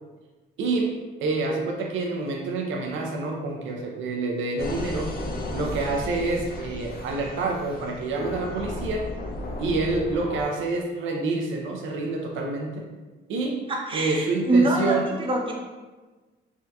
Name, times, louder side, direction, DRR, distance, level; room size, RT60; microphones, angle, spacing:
voice 1, 0.6-0.9 1.2-5.1 5.5-9.0 9.6-12.8 13.3-13.5 13.9-15.0, right 3 dB, 75° right, 0 dB, 0.5 m, -27 dB
sound 1, 4.6-10.4, left 1 dB, 50° left, 0.5 m, -34 dB
voice 2, 13.7-15.5, right 2 dB, 25° right, -1 dB, 0.6 m, -24 dB
3.4 x 2.6 x 2.2 m, 1.3 s
cardioid pair, 90°, 20 cm